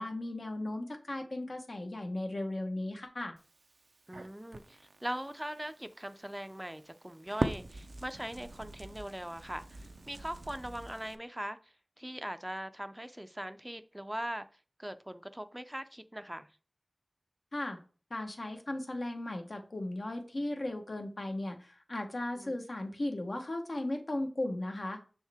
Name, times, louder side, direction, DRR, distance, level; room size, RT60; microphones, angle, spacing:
voice 1, 0.0-3.3 17.5-17.8 18.1-25.0, left 1 dB, 75° left, 1.1 m, -36 dB
Crackle, 3.4-11.1, right 2 dB, 85° right, 0.5 m, -42 dB
voice 2, 4.1-14.5 14.8-16.5 22.4-22.6, right 1 dB, 15° right, 0.4 m, -41 dB
6.3 x 4.5 x 3.5 m
wide cardioid pair, 55°, 0 cm